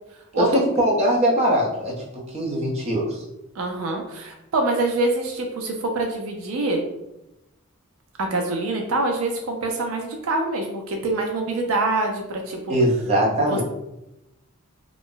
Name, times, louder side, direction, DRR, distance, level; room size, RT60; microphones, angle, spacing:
voice 1, 0.4-3.2 12.7-13.6, equal, 30° right, -3 dB, 0.6 m, -21 dB
voice 2, 3.6-6.9 8.2-12.8 13.5-13.6, right 2 dB, 70° right, 2 dB, 0.4 m, -25 dB
2.4 x 2.0 x 3.7 m, 0.90 s
head